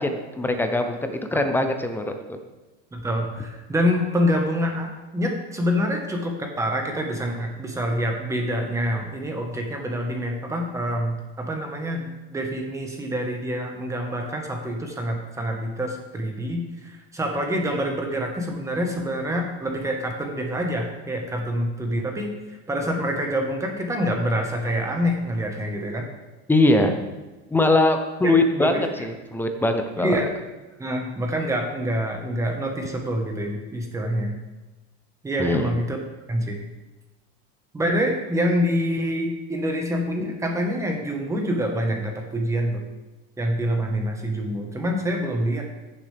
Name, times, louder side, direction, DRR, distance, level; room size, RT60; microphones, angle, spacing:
voice 1, 0.0-2.4 26.5-26.9 27.5-30.3 35.4-35.7, left 2 dB, 5° left, 6 dB, 0.6 m, -22 dB
voice 2, 2.9-22.3 22.7-26.1 28.2-28.3 28.6-28.8 30.0-30.3 30.8-34.3 35.2-36.0 36.3-36.6 37.7-42.9 43.4-45.6, equal, 10° right, 2 dB, 1.3 m, -26 dB
15.0 x 7.1 x 3.4 m, 1.1 s
supercardioid pair, 155°, 29 cm